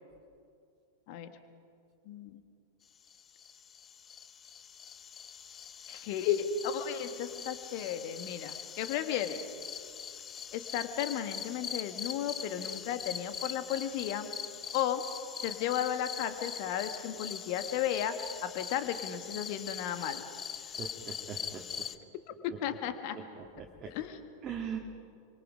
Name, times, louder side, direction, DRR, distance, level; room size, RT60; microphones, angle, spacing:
voice 1, 2.0-2.4 5.9-9.4 10.5-14.3 14.7-15.0 15.4-20.3 22.4-23.2 23.9-24.2, left 9 dB, 45° left, 9 dB, 1.6 m, -34 dB
sound 1, 3.1-22.0, left 7 dB, 25° left, 0.9 m, -42 dB
voice 2, 20.8-21.9 22.5-22.6 23.1-23.9 24.4-24.8, right 7 dB, 25° right, -1 dB, 2.1 m, -41 dB
27.0 x 25.0 x 5.2 m, 2.4 s
figure-of-eight pair, 90°, 0 cm